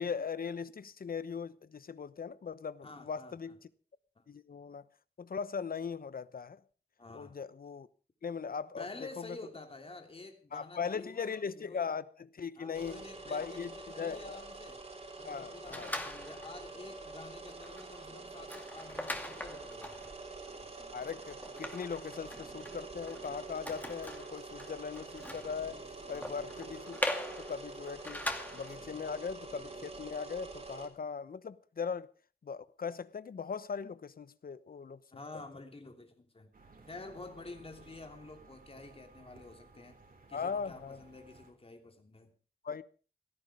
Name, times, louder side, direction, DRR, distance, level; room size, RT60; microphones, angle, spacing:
voice 1, 0.0-3.6 4.3-4.9 5.2-6.6 7.1-7.9 8.2-8.9 9.2-9.4 10.5-14.4 15.3-16.0 20.9-25.8 26.1-27.0 27.4-28.3 28.5-32.1 32.4-35.0 40.3-41.0 42.6-42.8, left 6 dB, 65° left, 1.0 m, -39 dB
voice 2, 2.8-3.3 4.2-4.3 7.0-7.4 8.7-11.9 12.6-14.8 15.2-20.0 26.0-26.4 35.1-36.5 36.9-40.0 40.3-42.3, left 2 dB, 35° left, 3.0 m, -49 dB
sound 1, 12.7-30.9, right 3 dB, 40° right, 3.9 m, -46 dB
sound 2, 15.7-16.6 17.1-17.2 17.5-28.8, left 1 dB, 10° left, 2.4 m, -42 dB
sound 3, 36.5-41.5, right 3 dB, 60° right, 4.1 m, -58 dB
17.5 x 13.5 x 4.9 m
wide cardioid pair, 90°, 16 cm